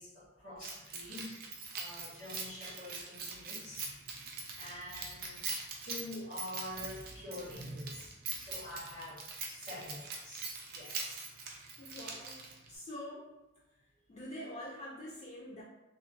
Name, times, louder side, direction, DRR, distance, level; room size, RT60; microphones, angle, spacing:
voice 1, 0.0-1.4 1.7-5.5 5.8-9.2 9.5-10.5 10.7-11.2, left 1 dB, 85° left, -8 dB, 1.4 m, -46 dB
Keys jangling, 0.6-12.7, right 4 dB, 45° right, 0.4 m, -43 dB
voice 2, 11.8-13.3 14.1-15.6, left 1 dB, 35° left, -5 dB, 0.3 m, -45 dB
2.7 x 2.0 x 2.6 m, 1.1 s
head